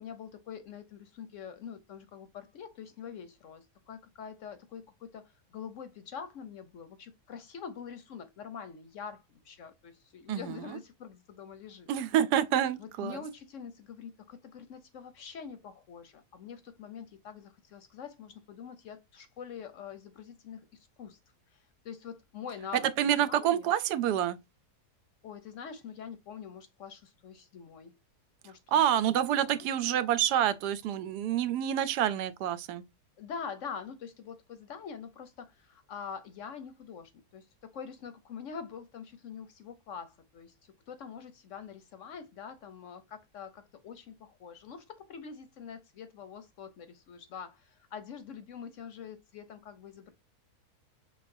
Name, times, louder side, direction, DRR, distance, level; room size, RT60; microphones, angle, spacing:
voice 1, 0.0-11.9 12.8-21.2 21.5-22.9 23.3-23.7 25.2-27.9 28.4-28.8 29.4-29.7 33.2-40.5 40.9-50.1, left 7 dB, 65° left, 0.9 m, -45 dB
voice 2, 11.9-13.2 23.0-24.4 28.7-32.8, right 10 dB, 85° right, 1.2 m, -27 dB
5.8 x 3.3 x 2.5 m
omnidirectional pair, 1.7 m